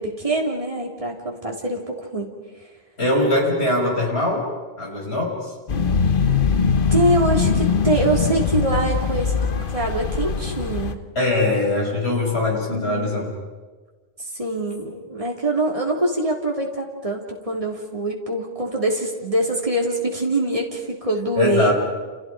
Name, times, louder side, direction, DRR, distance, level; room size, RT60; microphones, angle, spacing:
voice 1, 0.0-2.3 6.9-11.0 12.7-13.2 14.2-21.7, right 1 dB, 35° right, -1 dB, 3.6 m, -24 dB
voice 2, 3.0-5.5 11.2-13.3 21.4-21.7, left 2 dB, 85° left, 0 dB, 6.1 m, -22 dB
sound 1, 5.7-10.9, left 5 dB, 55° left, 1.2 m, -21 dB
29.5 x 29.5 x 5.2 m, 1.3 s
omnidirectional pair, 1.1 m